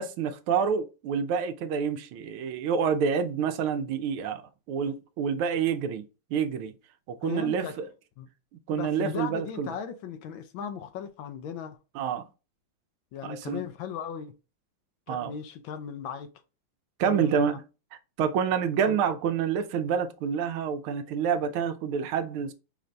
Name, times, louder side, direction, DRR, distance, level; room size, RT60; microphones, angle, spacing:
voice 1, 0.0-6.0 6.3-6.7 7.1-7.9 8.7-9.7 11.9-12.3 13.2-13.6 15.1-15.3 17.0-17.6 18.2-22.5, right 7 dB, 85° right, 1.5 m, -28 dB
voice 2, 7.2-7.8 8.2-8.3 8.7-11.8 13.1-14.4 15.1-16.3 17.0-17.6 18.9-19.0, left 7 dB, 75° left, 1.4 m, -37 dB
5.8 x 2.6 x 3.2 m
omnidirectional pair, 2.3 m